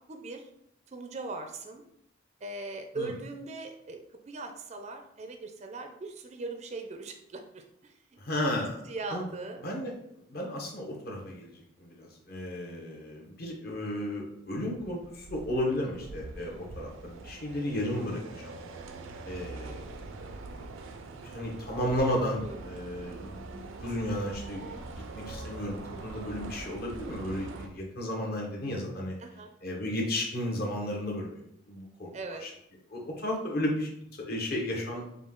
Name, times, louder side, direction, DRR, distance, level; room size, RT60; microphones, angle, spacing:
voice 1, 0.1-0.5 0.9-1.8 2.4-7.9 8.9-9.6 16.4-16.7 22.4-22.6 25.9-26.1 29.2-29.5 32.1-32.4, right 3 dB, 35° right, 5 dB, 0.4 m, -40 dB
voice 2, 8.2-8.8 9.1-9.2 9.6-9.9 10.3-18.5 19.3-20.1 20.5-20.7 21.0-29.2 29.6-31.3 31.7-32.1 32.4-32.5 32.9-35.2, left 1 dB, 50° left, -1 dB, 1.0 m, -34 dB
sound 1, 14.5-27.7, right 3 dB, 90° right, 0.5 m, -43 dB
5.0 x 2.3 x 3.7 m, 0.75 s
head